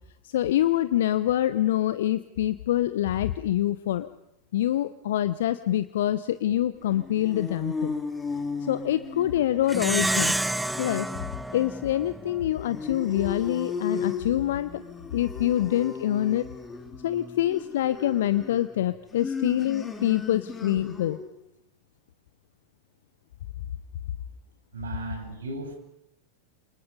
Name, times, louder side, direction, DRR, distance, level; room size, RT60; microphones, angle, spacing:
voice 1, 0.2-4.1 4.5-7.9 8.6-10.4 10.8-11.1 11.5-14.8 15.1-16.5 17.0-21.2, left 12 dB, 55° left, 14 dB, 1.0 m, -25 dB
sound 1, 6.8-21.3, left 5 dB, 15° left, 4.9 m, -36 dB
Plucked string instrument, 9.7-12.5, right 1 dB, 5° right, 0.9 m, -29 dB
voice 2, 24.7-25.8, right 2 dB, 65° right, 5 dB, 8.0 m, -35 dB
29.5 x 28.5 x 5.3 m, 0.83 s
figure-of-eight pair, 90°, 0 cm